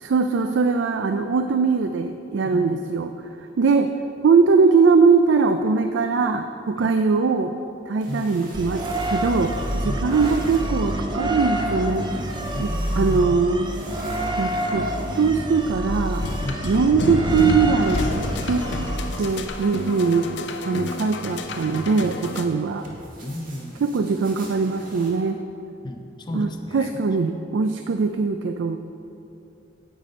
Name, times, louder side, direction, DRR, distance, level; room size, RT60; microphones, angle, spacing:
voice 1, 0.0-3.1 3.6-3.9 4.2-7.5 7.9-12.1 12.6-13.7 14.4-16.3 16.6-18.6 19.2-20.3 20.6-22.8 23.8-25.4 26.3-28.8, right 4 dB, 75° right, 8 dB, 0.4 m, -21 dB
voice 2, 2.4-2.8 6.8-6.9 8.1-8.3 9.8-10.1 12.5-13.4 16.4-16.6 22.5-22.6 23.2-23.9 25.8-27.0, left 1 dB, 25° left, 3 dB, 0.6 m, -33 dB
sound 1, 8.0-25.1, right 1 dB, 45° right, 1.7 m, -43 dB
sound 2, 8.5-19.5, equal, 25° right, 0.6 m, -28 dB
sound 3, 16.2-22.4, left 2 dB, 65° left, 0.6 m, -29 dB
9.1 x 8.1 x 5.3 m, 2.8 s
head